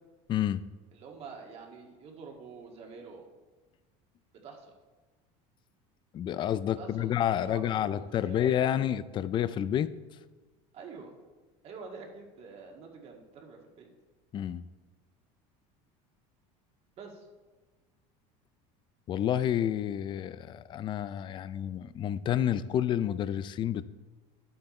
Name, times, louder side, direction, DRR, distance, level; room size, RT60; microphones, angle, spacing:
voice 1, 0.3-0.6 6.1-9.9 14.3-14.6 19.1-23.8, left 10 dB, 30° left, 15 dB, 0.4 m, -29 dB
voice 2, 0.9-3.2 4.4-4.7 6.8-8.5 10.7-11.1 11.6-13.9 17.0-17.3, right 5 dB, 45° right, 1 dB, 2.0 m, -47 dB
11.0 x 7.9 x 4.3 m, 1.3 s
cardioid pair, 140°, 15 cm